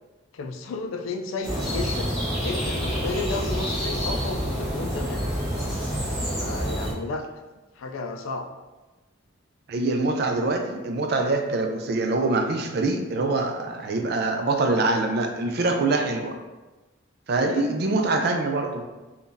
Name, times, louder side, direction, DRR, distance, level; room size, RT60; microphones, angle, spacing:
voice 1, 0.3-2.1 2.4-5.3 6.3-7.3 7.8-8.5 17.4-17.7, left 3 dB, 90° left, 5 dB, 0.3 m, -33 dB
sound 1, 1.4-6.9, equal, ahead, 1.2 m, -28 dB
voice 2, 9.7-16.4 17.3-18.8, right 2 dB, 55° right, 4 dB, 0.4 m, -24 dB
3.7 x 2.3 x 2.6 m, 1.2 s
head